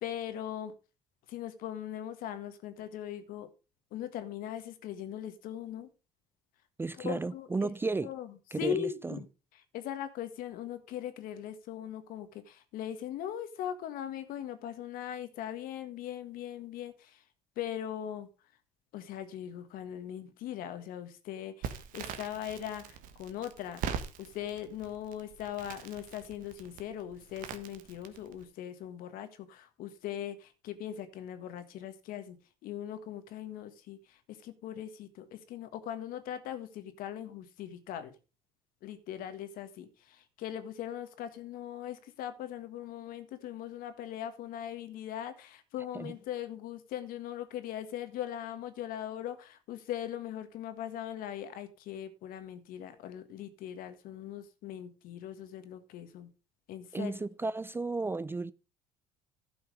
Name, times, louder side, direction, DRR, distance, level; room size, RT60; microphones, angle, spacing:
voice 1, 0.0-0.7 1.3-3.5 3.9-5.9 7.0-7.7 8.0-9.3 9.7-17.2 17.6-18.3 18.9-23.8 24.2-32.4 32.6-38.1 38.8-56.3 56.7-57.2, left 10 dB, 65° left, 1.6 m, -40 dB
voice 2, 6.8-8.1 8.5-9.2 45.9-46.1 56.9-58.5, right 3 dB, 15° right, 0.4 m, -33 dB
Crackle, 21.6-28.4, right 7 dB, 65° right, 1.4 m, -42 dB
11.5 x 5.7 x 5.0 m
supercardioid pair, 85°, 16 cm